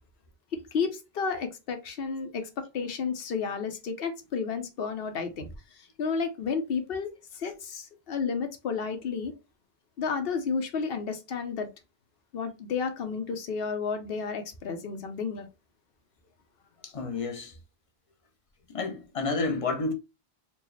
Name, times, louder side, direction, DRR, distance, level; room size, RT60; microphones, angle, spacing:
voice 1, 0.5-5.5 5.8-9.3 10.0-11.7 12.3-15.5, left 5 dB, 70° left, 1.0 m, -32 dB
voice 2, 16.8-17.6 18.7-19.9, left 3 dB, 35° left, 0.7 m, -30 dB
4.4 x 2.3 x 3.1 m
omnidirectional pair, 1.0 m